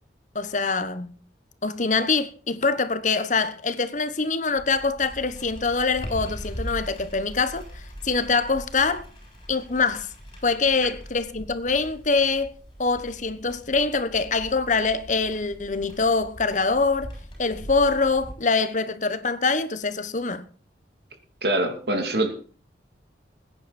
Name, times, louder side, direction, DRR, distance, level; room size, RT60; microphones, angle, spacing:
voice 1, 0.3-1.1 1.6-9.0 9.5-10.1 10.4-12.5 12.8-17.1 17.4-20.4, left 4 dB, 45° left, 1.1 m, -24 dB
sound 1, 4.5-18.3, equal, 25° left, 7.6 m, -41 dB
voice 2, 21.4-22.3, right 1 dB, 65° right, 3.0 m, -24 dB
21.5 x 9.8 x 4.3 m
head